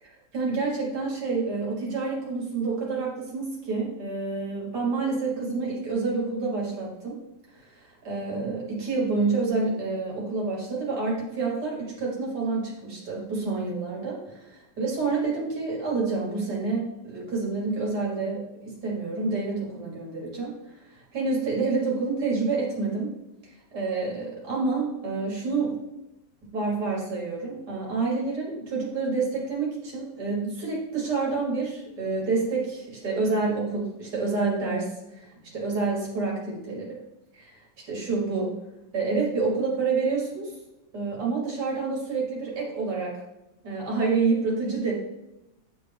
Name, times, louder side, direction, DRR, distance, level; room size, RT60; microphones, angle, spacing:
voice 1, 0.0-7.2 7.6-20.5 20.9-23.1 23.4-25.8 26.5-37.0 37.3-37.6 37.9-38.5 38.9-40.5 40.9-43.2 43.6-44.9, right 4 dB, 60° right, -3 dB, 2.2 m, -28 dB
9.4 x 3.4 x 3.5 m, 0.93 s
omnidirectional pair, 2.1 m